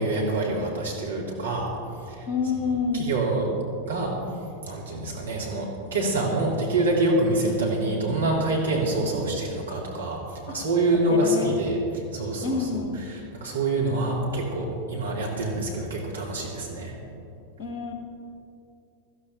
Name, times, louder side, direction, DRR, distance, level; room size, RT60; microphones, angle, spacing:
voice 1, 0.0-1.7 2.1-2.3 2.9-3.5 3.9-4.1 4.6-11.8 12.1-12.6 13.3-16.9, right 2 dB, 70° right, -2 dB, 2.4 m, -26 dB
voice 2, 2.3-3.1 10.5-10.6 11.1-11.5 12.4-13.1 17.6-17.9, left 5 dB, 55° left, 5 dB, 1.4 m, -28 dB
17.0 x 14.5 x 3.3 m, 2.7 s
figure-of-eight pair, 90°, 0 cm